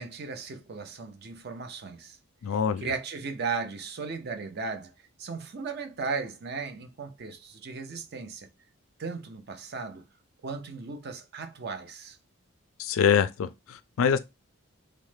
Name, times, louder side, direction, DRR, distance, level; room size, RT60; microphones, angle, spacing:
voice 1, 0.0-2.2 2.8-4.9 5.2-8.5 9.0-10.0 10.4-12.2, right 4 dB, 50° right, 0.4 m, -36 dB
voice 2, 2.4-2.9 12.8-14.2, left 7 dB, 70° left, 0.3 m, -25 dB
3.1 x 2.0 x 3.1 m
head